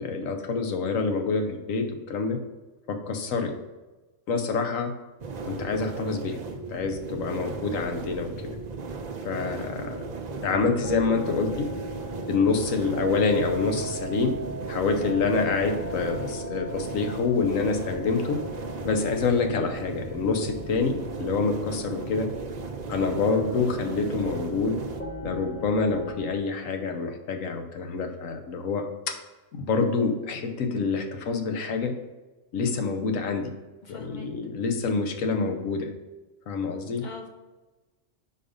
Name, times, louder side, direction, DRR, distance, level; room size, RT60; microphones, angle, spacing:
voice 1, 0.0-2.4 2.9-3.5 4.3-4.9 5.4-6.4 6.7-8.3 9.2-10.0 10.4-11.7 12.3-14.4 14.7-18.4 18.8-22.3 22.9-24.7 25.2-29.1 29.5-31.9 32.5-33.5 33.9-35.9 36.5-37.0, left 4 dB, 75° left, 4 dB, 1.2 m, -27 dB
sound 1, 5.2-25.0, right 4 dB, 50° right, 0.5 m, -36 dB
sound 2, 10.3-26.4, right 1 dB, 10° left, 0.9 m, -39 dB
voice 2, 33.8-34.3 37.0-37.3, left 5 dB, 40° left, 2 dB, 0.9 m, -42 dB
5.0 x 4.7 x 5.1 m, 1.1 s
omnidirectional pair, 1.4 m